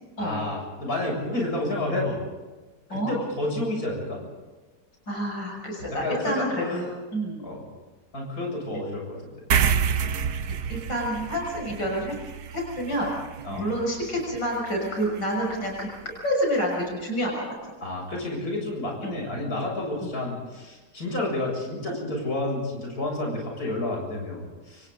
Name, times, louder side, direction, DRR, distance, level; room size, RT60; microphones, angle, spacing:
voice 1, 0.2-2.2 2.9-4.2 5.9-6.8 7.4-7.6 8.1-9.2 13.4-13.7 17.8-24.9, left 2 dB, 55° left, 0 dB, 7.8 m, -30 dB
voice 2, 5.1-7.4 10.7-12.1 12.5-13.1 13.5-15.9 16.2-17.7 19.0-19.2, equal, 85° left, -1 dB, 7.1 m, -28 dB
sound 1, 9.5-16.3, right 7 dB, 65° right, 1.5 m, -30 dB
29.0 x 27.5 x 4.0 m, 1.2 s
omnidirectional pair, 1.9 m